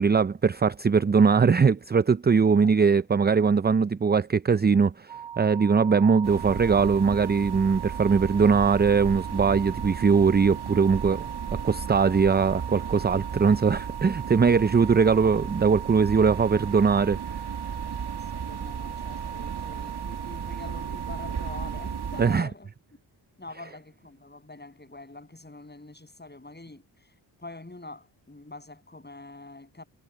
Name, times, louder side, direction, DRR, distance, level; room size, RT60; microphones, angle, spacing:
voice 1, 0.0-11.3 11.6-17.2 22.2-22.5, right 5 dB, 20° right, 0.6 m, -21 dB
sound 1, 5.1-22.4, right 9 dB, 70° right, 3.8 m, -39 dB
sound 2, 6.2-22.4, right 6 dB, 50° right, 2.3 m, -36 dB
voice 2, 18.5-22.7 23.4-26.8 27.4-29.8, left 2 dB, 20° left, 8.0 m, -44 dB
supercardioid pair, 45°, 49 cm